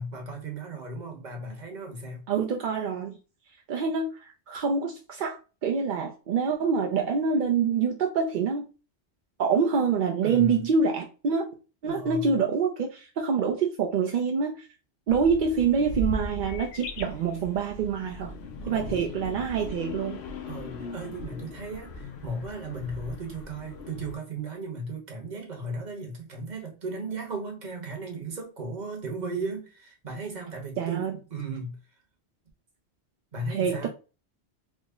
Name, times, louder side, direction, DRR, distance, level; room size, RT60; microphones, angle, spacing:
voice 1, 0.0-2.2 10.2-10.6 11.9-12.3 18.6-19.0 20.5-31.8 33.3-33.9, right 2 dB, 40° right, 1.1 m, -36 dB
voice 2, 2.3-3.2 3.7-8.7 9.4-11.5 11.8-14.7 15.1-18.3 18.7-20.2 30.8-31.2 33.5-33.9, right 5 dB, 60° right, 0.6 m, -26 dB
sound 1, 15.1-24.1, left 2 dB, 70° left, 0.8 m, -38 dB
3.6 x 2.0 x 3.5 m
omnidirectional pair, 1.2 m